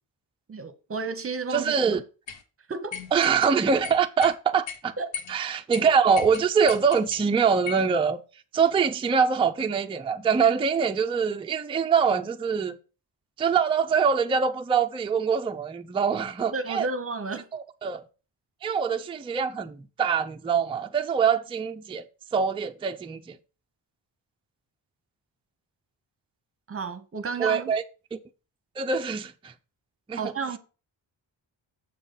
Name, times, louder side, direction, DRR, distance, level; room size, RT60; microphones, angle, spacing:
voice 1, 0.5-2.0 2.7-3.0 5.0-5.1 16.5-17.5 26.7-27.7 30.1-30.6, right 4 dB, 30° right, 0.8 m, -32 dB
voice 2, 1.5-2.0 3.1-4.9 5.3-8.2 8.5-12.8 13.4-16.9 17.5-18.0 18.6-22.1 22.3-23.4 27.4-27.8 28.1-28.2 28.8-29.5 30.1-30.2, right 6 dB, 15° right, 0.3 m, -24 dB
sound 1, 2.3-2.4 2.9-3.5 3.8-4.3 4.7-4.8 5.1-5.4 5.7-5.8 6.2-7.2 7.7-7.9, left 7 dB, 85° left, 0.9 m, -37 dB
7.0 x 3.8 x 5.4 m
wide cardioid pair, 145°, 45 cm